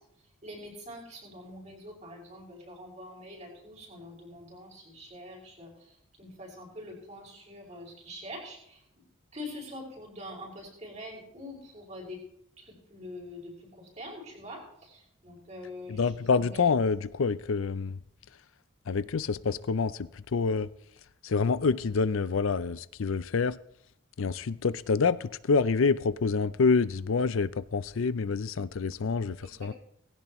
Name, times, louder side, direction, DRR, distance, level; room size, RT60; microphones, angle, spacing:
voice 1, 0.4-9.0 9.3-12.2 12.6-16.7 29.4-29.7, left 1 dB, 35° right, 5.7 m, -45 dB
voice 2, 15.9-18.0 18.9-20.7 21.2-23.6 24.2-29.7, left 4 dB, 75° left, 0.5 m, -27 dB
19.0 x 16.5 x 3.1 m
head